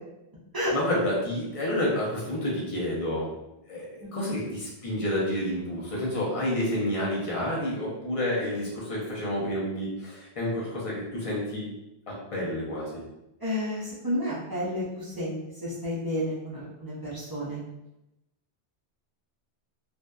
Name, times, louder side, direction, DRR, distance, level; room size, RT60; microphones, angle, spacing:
voice 1, 0.7-3.3 3.7-11.7 12.1-12.9, left 1 dB, 35° left, -5 dB, 0.6 m, -29 dB
voice 2, 13.4-17.6, left 1 dB, 35° right, -8 dB, 0.4 m, -31 dB
2.6 x 2.1 x 2.2 m, 0.91 s
omnidirectional pair, 1.2 m